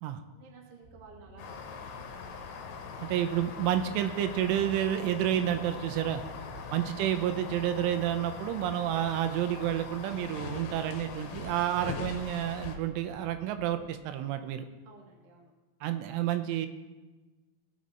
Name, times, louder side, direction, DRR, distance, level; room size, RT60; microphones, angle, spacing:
voice 1, 0.3-1.8 6.3-6.7 14.8-15.5, right 4 dB, 45° right, -2 dB, 1.9 m, -54 dB
sound 1, 0.8-13.9, right 3 dB, 65° right, 3.1 m, -52 dB
sound 2, 1.4-12.8, left 5 dB, 70° left, 2.7 m, -42 dB
voice 2, 3.1-6.2 6.7-14.6 15.8-16.7, right 11 dB, 90° right, 8 dB, 3.2 m, -30 dB
18.5 x 6.4 x 4.2 m, 1.2 s
omnidirectional pair, 5.6 m